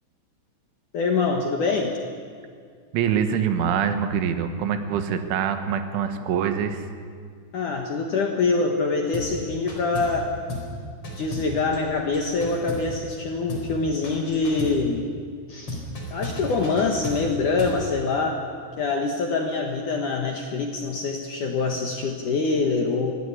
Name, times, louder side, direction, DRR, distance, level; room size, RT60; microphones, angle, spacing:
voice 1, 0.9-1.9 7.5-10.3 11.2-15.1 15.5-15.8 16.1-18.4 18.8-23.1, left 4 dB, 60° left, 3 dB, 2.2 m, -25 dB
voice 2, 2.9-6.9, right 8 dB, 75° right, 8 dB, 3.8 m, -24 dB
sound 1, 9.1-9.4 9.7-10.2 10.5-10.8 11.0-13.2 13.5-13.8 14.0-14.8 15.7-17.8, left 1 dB, 30° left, 4.8 m, -34 dB
24.5 x 16.5 x 9.9 m, 2.1 s
omnidirectional pair, 5.6 m